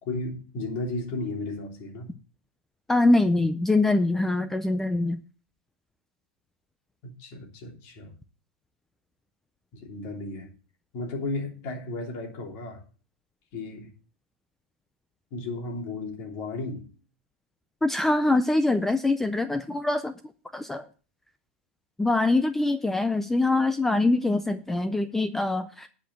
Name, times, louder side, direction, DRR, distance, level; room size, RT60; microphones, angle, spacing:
voice 1, 0.0-2.2 7.0-8.1 9.7-10.5 10.9-12.8 13.5-13.9 15.3-16.9, left 2 dB, 40° left, 1 dB, 3.2 m, -34 dB
voice 2, 2.9-5.2 17.8-20.1 20.5-20.8 22.0-25.9, left 2 dB, 5° left, 10 dB, 0.4 m, -23 dB
10.0 x 5.1 x 7.4 m, 0.39 s
supercardioid pair, 160°, 7 cm